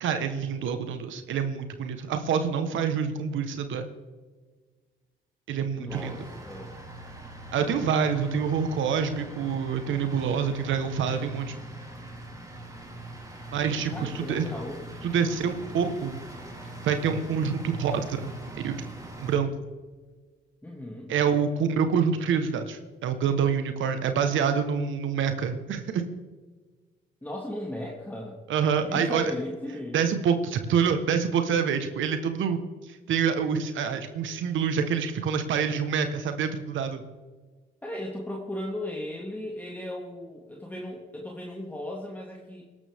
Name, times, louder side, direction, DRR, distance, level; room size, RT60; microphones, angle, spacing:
voice 1, 0.0-3.9 5.5-6.2 7.5-11.6 13.5-14.5 15.0-16.2 16.8-18.3 18.6-18.8 19.2-19.5 21.1-26.0 28.5-29.3 29.9-37.0, right 6 dB, 75° right, 8 dB, 1.4 m, -26 dB
voice 2, 5.8-6.7 13.9-14.8 20.6-21.1 27.2-28.4 28.8-30.0 37.8-42.6, left 1 dB, 10° left, -2 dB, 2.3 m, -36 dB
sound 1, 5.9-19.4, right 1 dB, 15° right, 2.8 m, -42 dB
21.0 x 12.0 x 3.6 m, 1.4 s
cardioid pair, 90°, 20 cm